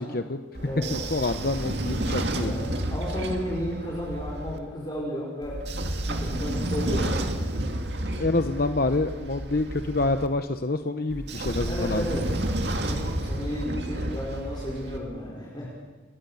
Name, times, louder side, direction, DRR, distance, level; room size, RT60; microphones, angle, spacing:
voice 1, 0.0-0.4 0.9-2.6 8.2-12.1, left 2 dB, 55° left, 8 dB, 0.9 m, -27 dB
voice 2, 0.6-0.9 2.4-5.6 6.1-7.4 11.7-12.3 12.8-15.7, equal, 25° left, -4 dB, 5.3 m, -33 dB
Train / Sliding door, 0.6-4.6 5.4-10.3 11.1-15.0, right 1 dB, 65° right, 2.3 m, -31 dB
28.5 x 21.5 x 7.1 m, 1.3 s
head